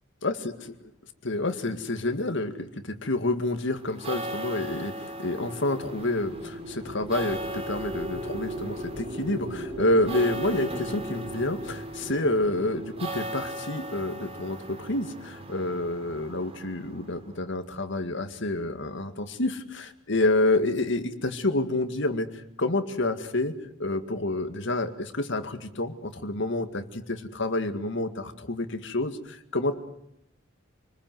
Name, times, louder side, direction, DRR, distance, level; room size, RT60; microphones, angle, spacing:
voice 1, 0.2-0.5 1.2-22.3 22.6-23.5 23.8-29.8, left 2 dB, 65° left, 7 dB, 2.1 m, -28 dB
sound 1, 3.8-17.4, right 1 dB, 30° right, 3.1 m, -38 dB
sound 2, 5.7-14.1, right 1 dB, 50° right, 5.1 m, -39 dB
27.0 x 20.5 x 7.8 m, 0.77 s
head